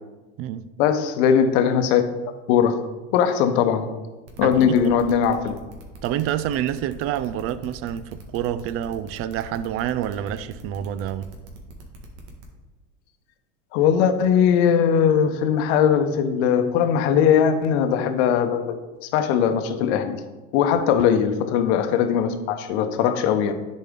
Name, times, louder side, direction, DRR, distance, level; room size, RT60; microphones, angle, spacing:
voice 1, 0.8-2.0 2.5-2.8 3.1-3.9 4.4-5.5 13.7-18.8 19.1-20.2 20.5-23.5, left 8 dB, 60° left, 0.9 m, -20 dB
sound 1, 4.3-12.4, right 2 dB, 65° right, 1.6 m, -44 dB
voice 2, 4.4-5.1 6.0-11.3, right 11 dB, 35° right, 0.4 m, -28 dB
10.0 x 4.3 x 3.6 m
hypercardioid pair, 85°, 38 cm